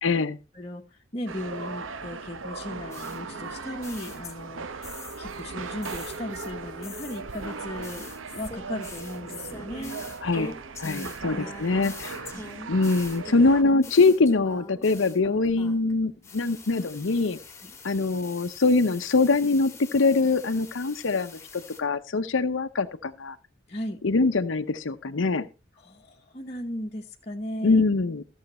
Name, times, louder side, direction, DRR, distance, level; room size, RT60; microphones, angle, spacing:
voice 1, 0.0-0.4 10.2-10.5 10.8-12.3 12.7-17.4 17.8-23.4 24.0-25.5 27.6-28.2, left 3 dB, 85° left, 0.7 m, -23 dB
voice 2, 1.1-4.9 5.2-10.0 10.8-11.5 12.3-12.4 17.6-17.7 23.7-24.0 25.8-27.8, left 1 dB, 35° left, 1.0 m, -36 dB
sound 1, 1.3-13.6, right 4 dB, 90° right, 0.8 m, -38 dB
sound 2, 2.9-5.4 5.8-15.9 16.2-21.8, left 3 dB, 15° left, 1.6 m, -44 dB
Acoustic guitar, 7.4-12.6, right 4 dB, 65° right, 6.8 m, -59 dB
14.0 x 7.2 x 4.2 m
head